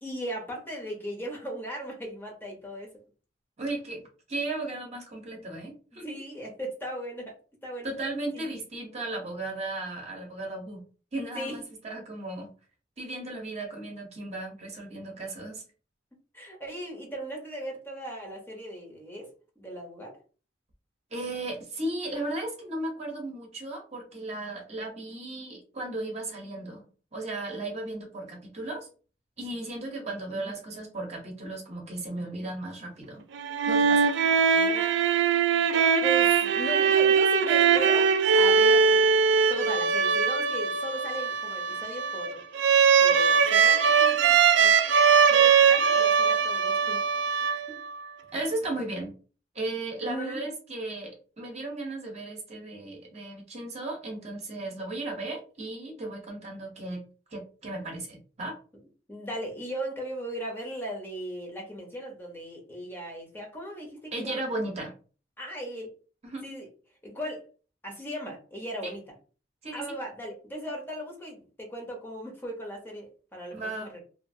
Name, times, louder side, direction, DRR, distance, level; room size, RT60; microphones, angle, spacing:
voice 1, 0.0-2.9 5.9-7.3 7.6-7.9 8.3-8.5 11.3-11.6 16.3-19.3 19.6-20.1 30.4-30.5 34.5-34.7 36.0-39.1 39.5-42.4 43.0-44.8 45.3-47.6 50.0-50.4 59.1-64.5 65.4-65.9 66.4-66.7 67.0-67.4 67.8-69.1 69.7-74.0, right 1 dB, 10° left, -1 dB, 0.7 m, -37 dB
voice 2, 3.6-4.0 4.3-6.1 7.8-10.8 11.1-12.5 13.0-15.6 21.1-26.8 27.1-28.9 29.4-33.3 33.7-34.1 48.3-49.1 49.5-57.0 57.3-58.6 64.1-64.9 66.2-66.5 68.8-68.9 69.6-69.8 73.5-73.9, right 2 dB, 35° right, 0 dB, 0.8 m, -35 dB
sound 1, 33.3-48.0, right 6 dB, 70° right, 0.3 m, -21 dB
2.7 x 2.5 x 2.5 m, 0.38 s
head